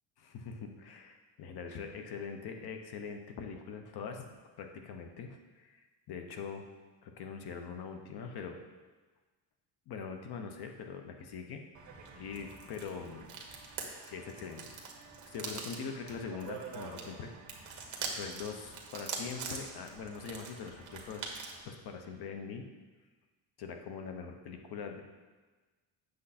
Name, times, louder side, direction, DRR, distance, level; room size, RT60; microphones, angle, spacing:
voice 1, 0.2-4.3 4.6-6.7 7.0-8.6 9.9-11.6 12.2-13.3 14.1-14.7 15.2-17.3 17.6-21.3 21.6-22.7 23.6-25.0, left 6 dB, 60° left, 5 dB, 1.0 m, -43 dB
sound 1, 11.7-21.6, right 4 dB, 40° right, 1.4 m, -44 dB
7.9 x 6.8 x 4.3 m, 1.3 s
cardioid pair, 145°, 44 cm